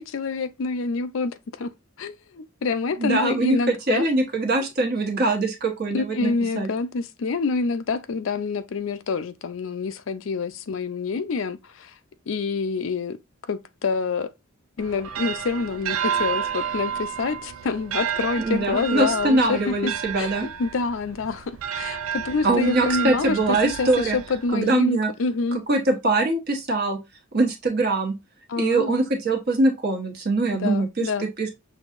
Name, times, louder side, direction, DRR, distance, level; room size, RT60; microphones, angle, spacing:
voice 1, 0.0-4.1 5.9-11.9 12.3-13.2 13.5-14.3 14.8-20.3 20.6-25.6 28.5-28.9 30.5-31.3, left 4 dB, 65° left, 0.5 m, -27 dB
voice 2, 3.0-6.7 18.4-20.5 22.4-24.2 24.5-25.1 25.7-27.0 27.3-28.1 28.6-31.5, right 2 dB, 50° right, 1.1 m, -23 dB
sound 1, 14.8-24.7, right 8 dB, 80° right, 0.4 m, -31 dB
6.3 x 2.7 x 2.5 m
head